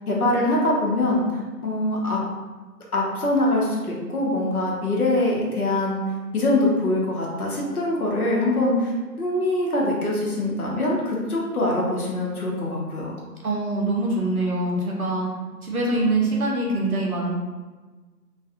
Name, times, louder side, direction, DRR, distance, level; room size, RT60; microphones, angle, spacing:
voice 1, 0.1-2.2 2.9-6.0 6.3-13.2, left 1 dB, 60° left, -3 dB, 0.8 m, -23 dB
voice 2, 13.4-15.3 15.6-17.3, right 2 dB, 60° right, -3 dB, 0.8 m, -24 dB
2.5 x 2.3 x 2.6 m, 1.3 s
figure-of-eight pair, 170°, 49 cm